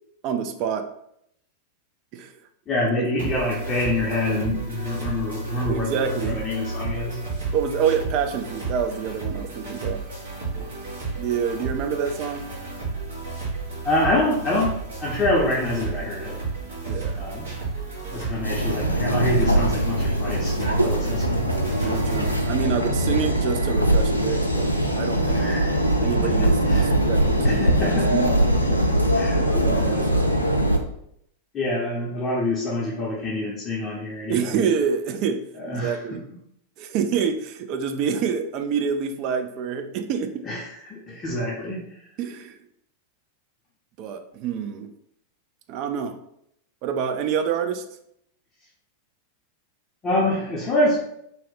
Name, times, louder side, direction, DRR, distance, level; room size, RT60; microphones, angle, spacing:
voice 1, 0.2-0.9 2.1-2.3 2.8-3.0 5.6-6.4 7.5-10.0 11.2-12.5 16.9-17.3 21.8-25.5 26.0-28.4 29.4-30.4 34.3-36.2 36.8-40.4 42.2-42.6 44.0-44.9 45.7-46.2 46.8-47.8, right 7 dB, 40° right, 7 dB, 0.3 m, -27 dB
voice 2, 2.7-7.2 10.5-10.7 13.8-16.4 17.2-17.5 18.1-21.9 22.2-22.6 22.9-23.0 25.3-25.8 26.2-26.9 27.4-28.4 28.7-30.2 31.5-34.6 35.6-36.2 40.4-42.0 50.0-51.0, left 1 dB, 25° left, -4 dB, 0.6 m, -27 dB
sound 1, 3.2-22.3, right 3 dB, 65° right, 1.2 m, -32 dB
sound 2, 18.4-30.8, right 1 dB, 85° left, 0.3 m, -21 dB
2.7 x 2.1 x 3.9 m, 0.74 s
figure-of-eight pair, 90°, 0 cm